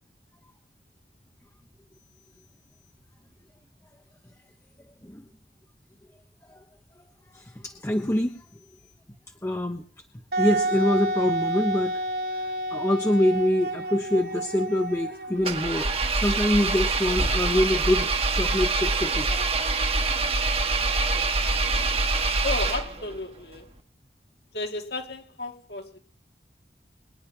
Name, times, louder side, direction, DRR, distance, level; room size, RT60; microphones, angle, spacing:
voice 1, 7.3-8.4 9.4-9.8 10.4-11.9 12.7-15.9 16.1-19.3, left 1 dB, 15° left, 1.0 m, -25 dB
Wind instrument woodwind instrument, 10.3-15.9, right 1 dB, 65° right, 2.6 m, -30 dB
Engine, 15.4-23.2, right 3 dB, 35° right, 1.4 m, -25 dB
voice 2, 22.4-23.7 24.5-26.0, left 2 dB, 65° left, 2.4 m, -33 dB
23.5 x 10.5 x 3.6 m
head